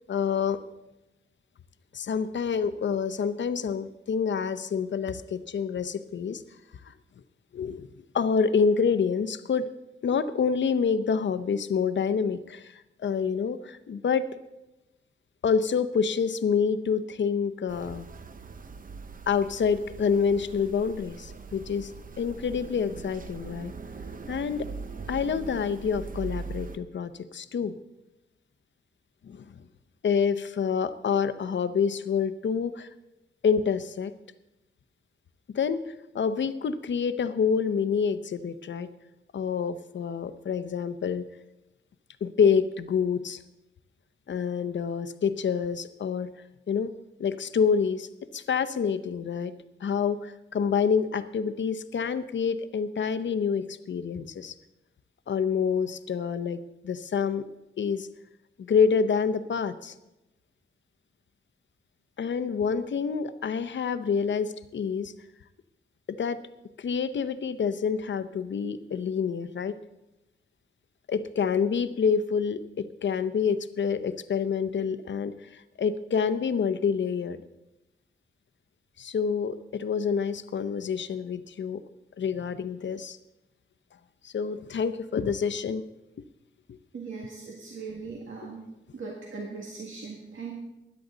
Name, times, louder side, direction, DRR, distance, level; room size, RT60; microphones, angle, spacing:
voice 1, 0.1-0.6 1.9-6.4 6.8-6.9 7.5-9.7 10.0-14.3 15.4-18.1 19.3-21.9 22.2-23.7 24.3-24.7 25.1-27.7 29.2-29.6 30.0-32.9 33.4-34.1 35.5-38.9 39.3-41.2 42.2-43.4 44.3-46.3 46.7-46.9 47.2-48.1 48.3-49.5 49.8-54.5 55.3-57.4 57.8-58.1 58.6-59.9 62.2-65.1 66.1-66.4 66.8-69.8 71.1-77.4 79.0-81.8 82.2-83.2 84.2-85.8 86.7-86.8, left 6 dB, 70° left, 12 dB, 0.7 m, -27 dB
sound 1, 17.7-26.8, right 4 dB, 45° right, 0.8 m, -41 dB
voice 2, 86.9-88.6 88.9-90.6, right 4 dB, 85° right, -2 dB, 1.9 m, -39 dB
16.0 x 10.5 x 3.9 m, 0.97 s
wide cardioid pair, 120°, 20 cm